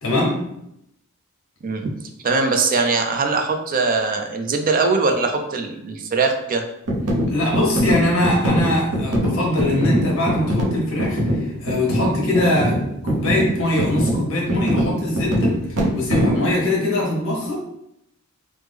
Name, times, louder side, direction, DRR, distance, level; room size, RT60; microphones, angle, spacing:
voice 1, 0.0-0.4 7.3-12.7 13.0-15.5 15.9-17.6, left 1 dB, 60° left, -2 dB, 1.0 m, -22 dB
voice 2, 1.6-1.9 2.2-6.6, right 4 dB, 40° right, 5 dB, 0.4 m, -21 dB
sound 1, 6.9-16.5, equal, 80° right, 0.7 m, -23 dB
3.2 x 2.0 x 3.4 m, 0.79 s
head